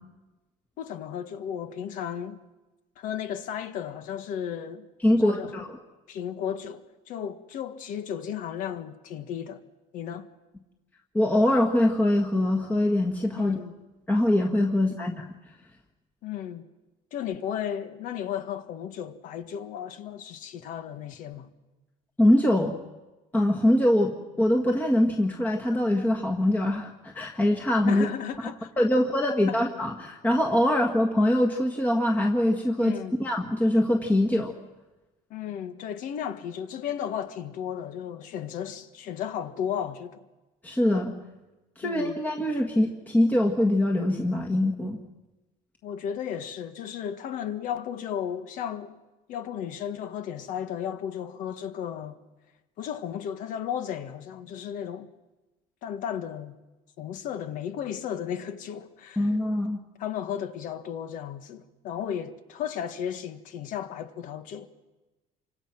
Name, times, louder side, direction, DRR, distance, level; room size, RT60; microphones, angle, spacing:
voice 1, 0.8-2.4 3.0-4.9 5.2-5.6 6.1-9.6 9.9-10.3 13.4-13.7 16.2-16.7 17.1-21.5 27.9-28.7 29.3-29.6 32.8-33.1 35.3-40.2 41.8-42.2 45.8-49.0 49.3-52.2 52.8-55.1 55.8-56.6 57.0-59.3 60.0-64.7, left 9 dB, 60° left, 1.6 m, -34 dB
voice 2, 5.0-5.8 11.1-13.5 14.1-15.3 22.2-22.7 23.3-28.1 28.8-34.5 40.6-41.1 41.8-45.0 59.2-59.8, left 1 dB, 10° left, 1.6 m, -23 dB
28.5 x 25.0 x 6.0 m
cardioid pair, 145°, 15 cm